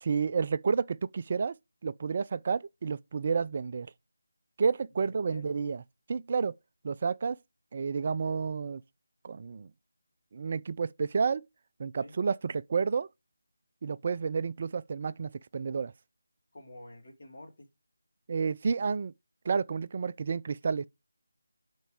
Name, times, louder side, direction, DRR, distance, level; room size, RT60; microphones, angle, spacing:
voice 1, 0.0-1.5 1.8-3.9 4.6-5.8 6.1-6.6 6.8-7.4 7.7-8.8 9.2-9.7 10.3-11.4 11.8-13.1 13.8-15.9 18.3-19.1 19.5-20.9, right 5 dB, 35° right, 0.3 m, -30 dB
voice 2, 5.0-5.5 12.0-12.1 16.5-17.7, left 1 dB, 40° left, 2.2 m, -49 dB
7.9 x 4.4 x 4.8 m
figure-of-eight pair, 160°, 0 cm